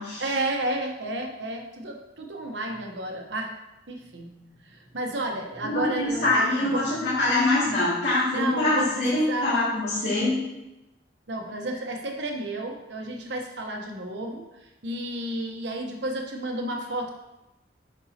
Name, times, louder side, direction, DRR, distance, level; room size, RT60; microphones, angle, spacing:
voice 1, 0.2-3.5 3.9-7.1 8.3-9.5 10.1-10.2 11.3-14.4 14.8-17.1, right 1 dB, 80° right, 2 dB, 0.9 m, -32 dB
voice 2, 5.6-10.4, left 2 dB, 70° left, -9 dB, 2.2 m, -24 dB
7.0 x 5.4 x 2.8 m, 0.97 s
head